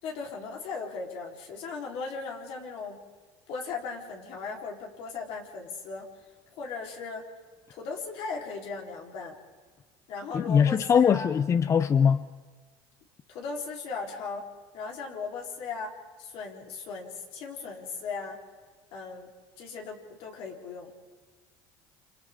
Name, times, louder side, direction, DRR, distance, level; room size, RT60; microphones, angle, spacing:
voice 1, 0.0-3.0 3.5-6.1 6.5-7.2 7.7-9.4 10.1-11.3 13.3-14.5 14.7-18.4 18.9-19.3 19.6-20.9, left 4 dB, 65° left, 4.1 m, -37 dB
voice 2, 10.3-12.3, left 7 dB, 30° left, 0.6 m, -22 dB
28.5 x 27.0 x 3.8 m
supercardioid pair, 115°, 10 cm